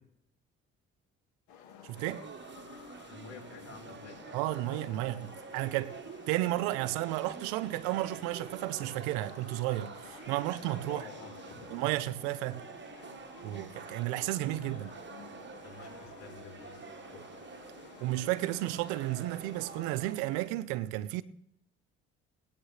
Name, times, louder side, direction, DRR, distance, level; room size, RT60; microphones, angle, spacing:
sound 1, 1.5-19.9, left 7 dB, 90° left, 2.0 m, -52 dB
voice 1, 1.8-2.2 4.3-5.9 6.3-11.0 11.7-12.6 13.4-14.9 18.0-21.2, right 16 dB, 90° right, 0.6 m, -33 dB
sound 2, 2.0-20.5, right 6 dB, 40° right, 1.2 m, -48 dB
voice 2, 3.1-4.2 10.9-11.8 15.6-17.3, left 5 dB, 65° left, 3.9 m, -49 dB
20.5 x 8.8 x 3.2 m
supercardioid pair, 60°, 30 cm